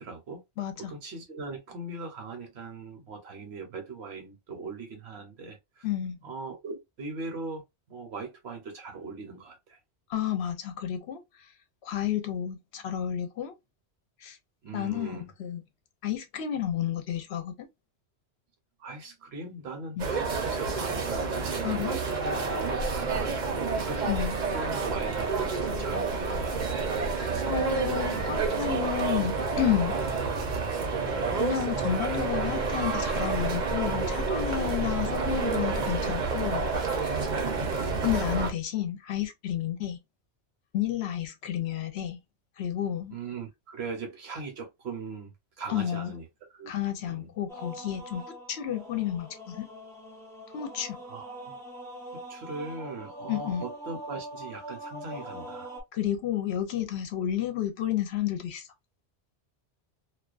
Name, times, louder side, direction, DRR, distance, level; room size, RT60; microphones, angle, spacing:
voice 1, 0.0-0.4 0.8-5.9 6.2-7.6 7.9-9.8 14.6-15.3 18.8-24.2 24.5-26.9 27.2-28.0 37.4-38.0 43.1-45.3 45.6-46.2 46.5-46.7 47.0-47.3 51.1-51.6 52.1-55.7, right 4 dB, 70° right, 1.0 m, -40 dB
voice 2, 0.6-0.9 5.8-6.2 10.1-11.2 11.8-13.5 14.2-14.4 14.7-15.6 16.0-17.7 20.0-20.1 21.6-22.0 24.1-24.4 27.5-30.0 31.3-36.7 37.0-37.2 38.0-40.0 40.7-42.2 42.6-43.2 45.7-46.1 46.7-49.7 50.5-51.0 53.3-53.6 55.9-58.7, left 10 dB, 70° left, 0.8 m, -31 dB
sound 1, 20.0-38.5, right 4 dB, 50° right, 0.7 m, -29 dB
sound 2, 47.5-55.8, right 1 dB, 5° left, 0.4 m, -43 dB
2.3 x 2.2 x 2.4 m
omnidirectional pair, 1.2 m